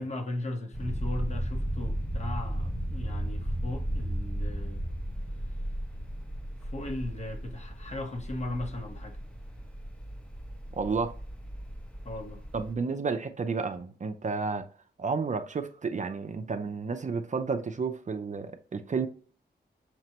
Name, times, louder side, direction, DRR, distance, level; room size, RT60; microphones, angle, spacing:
voice 1, 0.0-4.8 6.6-9.2 12.0-12.4, left 1 dB, 40° left, 0.8 m, -37 dB
sound 1, 0.7-12.7, equal, 5° left, 0.6 m, -35 dB
voice 2, 10.7-11.1 12.5-14.7 15.0-19.1, right 4 dB, 45° right, 0.5 m, -31 dB
5.8 x 2.1 x 2.8 m
cardioid pair, 75°, 18 cm